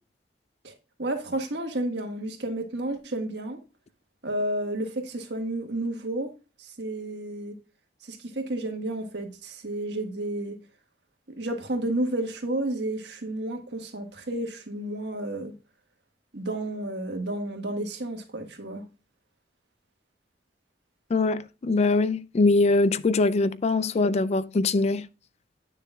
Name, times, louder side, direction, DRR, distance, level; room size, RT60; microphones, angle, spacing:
voice 1, 1.0-3.6 4.2-6.3 6.6-7.5 8.0-10.6 11.3-15.5 16.3-18.8, right 1 dB, 70° right, 1.6 m, -31 dB
voice 2, 21.1-25.1, left 3 dB, 35° left, 0.4 m, -22 dB
9.4 x 6.7 x 2.3 m
head